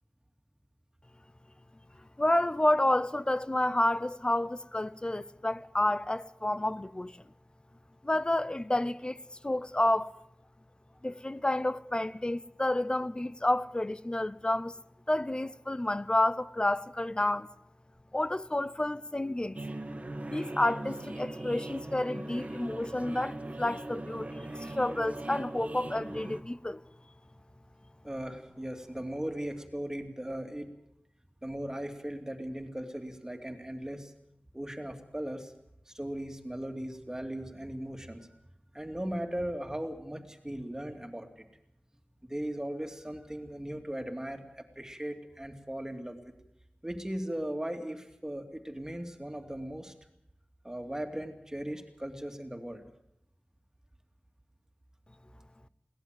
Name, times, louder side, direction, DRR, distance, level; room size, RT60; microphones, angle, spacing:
voice 1, 2.2-7.1 8.0-10.1 11.0-14.7 15.1-17.5 18.1-19.6 20.3-26.8, left 1 dB, 25° left, 0.7 m, -30 dB
sound 1, 19.5-26.4, right 2 dB, 45° right, 1.8 m, -40 dB
voice 2, 28.0-30.7 31.4-34.1 34.5-35.5 35.9-38.3 38.7-41.4 42.3-46.2 46.8-49.9 50.6-52.8, right 1 dB, 15° right, 2.7 m, -38 dB
22.0 x 17.5 x 7.6 m
wide cardioid pair, 65°, 3 cm